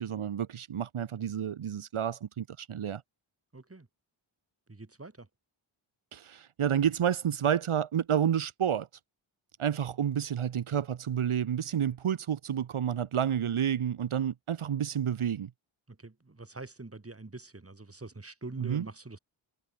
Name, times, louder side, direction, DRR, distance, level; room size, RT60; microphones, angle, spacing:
voice 1, 0.0-3.0 6.1-8.9 9.6-15.5 18.6-18.8, right 9 dB, 85° right, 1.3 m, -30 dB
voice 2, 3.5-3.9 4.7-5.3 15.9-19.2, right 3 dB, 30° right, 5.8 m, -45 dB
wide cardioid pair, 100°, 48 cm